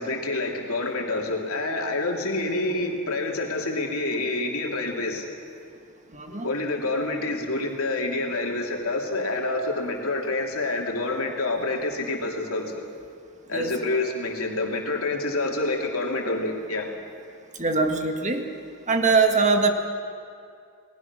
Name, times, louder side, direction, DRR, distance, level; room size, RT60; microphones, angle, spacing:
voice 1, 0.0-5.3 6.4-12.9 13.5-16.9, left 2 dB, 70° left, 1 dB, 3.1 m, -27 dB
voice 2, 6.1-6.5 13.5-13.9 17.6-18.5 18.9-19.7, right 4 dB, 35° right, 4 dB, 1.7 m, -22 dB
29.5 x 19.5 x 6.2 m, 2.4 s
head